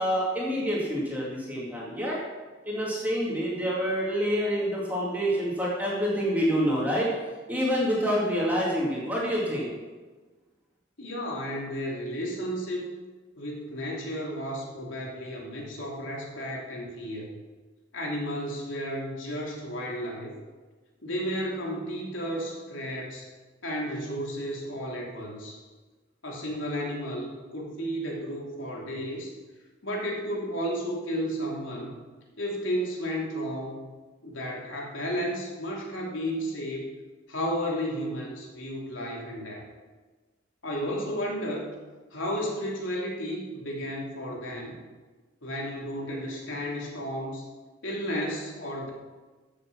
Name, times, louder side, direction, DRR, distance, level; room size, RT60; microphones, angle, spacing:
voice 1, 0.0-2.2 2.6-7.2 7.5-9.7, equal, 10° right, -5 dB, 2.2 m, -27 dB
voice 2, 11.0-12.9 13.4-17.3 17.9-20.3 21.0-23.3 23.6-25.6 26.2-29.3 29.8-31.9 32.4-33.9 34.2-36.9 37.3-39.6 40.6-41.7 42.1-44.7 45.4-47.4 47.8-48.9, equal, 85° left, -2 dB, 3.0 m, -33 dB
14.5 x 6.8 x 5.9 m, 1.3 s
head